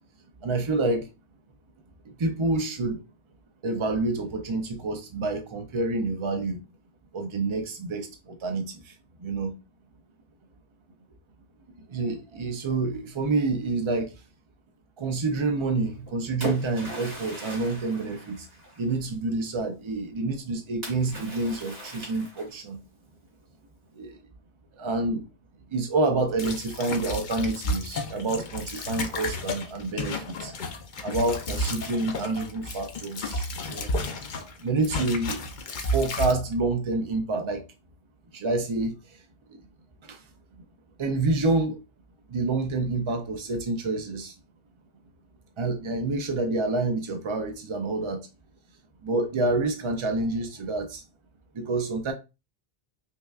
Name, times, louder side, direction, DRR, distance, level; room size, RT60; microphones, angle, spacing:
voice 1, 0.4-1.1 2.1-3.0 3.6-6.6 7.1-9.5 11.8-14.1 15.0-18.5 18.8-22.8 23.9-24.2 24.7-25.3 25.7-30.5 31.0-33.9 34.6-35.5 35.7-37.6 38.3-39.2 39.5-39.6 40.0-40.2 41.0-41.8 42.3-44.4 45.6-48.3 49.0-51.0 51.5-52.1, right 3 dB, 50° right, 0.3 m, -28 dB
Splash splatter, 15.8-19.0 20.8-22.8, equal, 80° right, 2.5 m, -38 dB
sound 1, 26.4-34.5 34.8-36.3, left 1 dB, 55° left, 0.7 m, -32 dB
5.3 x 2.3 x 2.3 m
omnidirectional pair, 1.0 m